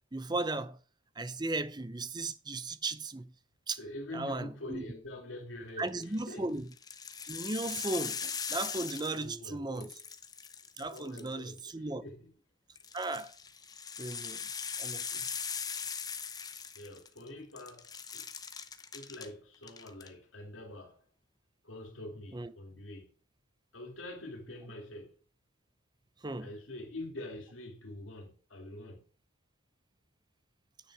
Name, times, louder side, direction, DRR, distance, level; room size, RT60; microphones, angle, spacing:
voice 1, 0.1-0.8 1.2-3.3 3.7-3.8 4.1-4.8 5.8-6.6 7.3-9.9 10.8-12.0 12.9-13.3 14.0-14.4 14.8-15.0 22.3-22.5 26.2-26.5, right 2 dB, 20° right, 0.6 m, -36 dB
voice 2, 3.8-6.6 9.1-10.0 10.9-12.3 16.7-18.3 18.9-21.0 21.6-23.1 23.7-25.1 26.4-29.0, left 1 dB, 75° left, 2.5 m, -45 dB
sound 1, 5.9-6.2 6.7-9.5 9.7-11.6 12.7-17.3 17.6-19.3 19.6-20.1, left 6 dB, 20° left, 0.7 m, -40 dB
9.6 x 6.3 x 4.8 m
head